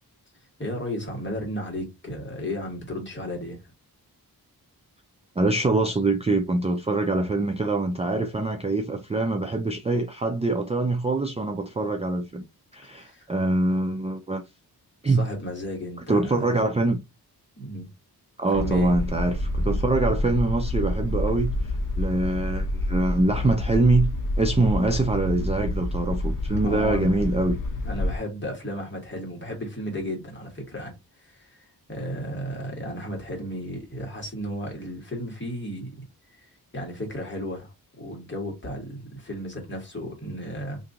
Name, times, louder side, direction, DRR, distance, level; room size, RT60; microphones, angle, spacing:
voice 1, 0.6-3.6 12.9-13.3 15.0-16.4 17.6-17.9 18.5-18.9 26.6-27.2 27.8-30.9 31.2-36.0 36.3-40.8, equal, 30° left, 1.5 m, -34 dB
voice 2, 5.4-12.5 12.7-14.4 15.0-15.3 16.1-17.0 18.4-24.1 24.4-27.6, right 2 dB, 15° right, 0.4 m, -24 dB
sound 1, 18.5-28.2, left 1 dB, 55° left, 0.8 m, -28 dB
2.7 x 2.6 x 3.6 m
wide cardioid pair, 125°, 39 cm